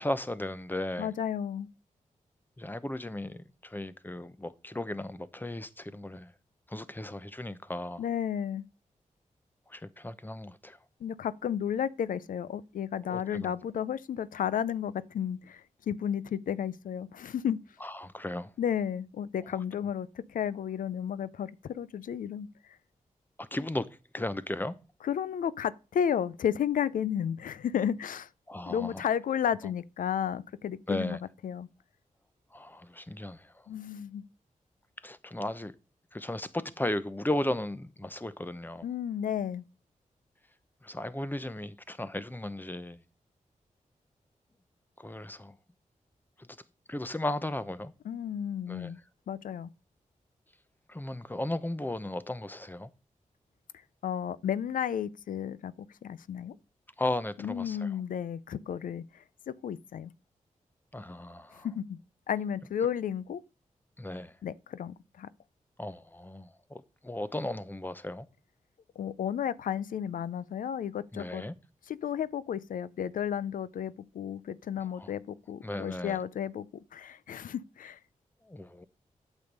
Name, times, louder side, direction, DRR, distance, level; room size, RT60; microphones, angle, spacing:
voice 1, 0.0-1.1 2.6-6.3 6.7-8.0 9.7-10.8 13.1-13.5 17.8-18.5 23.4-23.9 24.1-24.8 28.5-29.0 29.6-29.7 30.9-31.2 32.5-33.7 35.0-35.7 36.1-38.9 40.8-43.0 45.0-45.6 46.4-46.5 46.9-47.9 48.7-48.9 50.9-52.9 57.0-57.9 60.9-61.7 64.0-64.4 65.8-68.3 71.1-71.5 75.0-75.1 75.6-76.2 78.4-78.8, left 1 dB, 15° left, 0.8 m, -36 dB
voice 2, 1.0-1.7 8.0-8.6 11.0-17.6 18.6-22.5 25.0-28.3 28.7-31.2 31.4-31.7 33.7-34.2 38.8-39.6 48.1-49.0 49.3-49.7 54.0-55.7 56.0-56.5 57.4-60.1 61.5-62.0 62.3-63.4 64.4-65.3 69.0-71.4 71.9-76.7 76.9-78.0, left 9 dB, 85° left, 0.4 m, -33 dB
8.5 x 6.3 x 5.3 m
cardioid pair, 65°, 14 cm